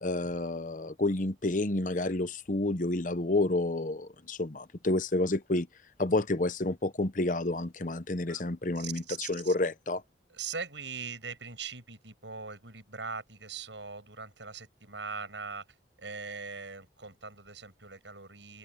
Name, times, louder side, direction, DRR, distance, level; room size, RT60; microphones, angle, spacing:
voice 1, 0.0-5.7 6.0-10.0, left 2 dB, 45° left, 0.9 m, -30 dB
voice 2, 8.8-9.5 10.3-15.6 16.0-18.6, right 5 dB, 75° right, 7.8 m, -41 dB
head